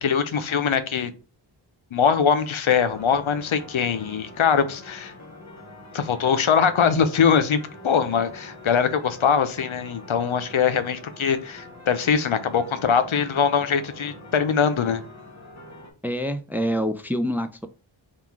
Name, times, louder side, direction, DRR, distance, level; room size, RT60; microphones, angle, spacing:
voice 1, 0.0-1.1 1.9-5.1 5.9-15.0, left 7 dB, 85° left, 0.6 m, -22 dB
sound 1, 2.7-15.9, left 1 dB, 35° left, 1.2 m, -44 dB
voice 2, 16.0-17.7, equal, 5° right, 0.4 m, -26 dB
3.7 x 2.4 x 4.5 m
wide cardioid pair, 40°, 47 cm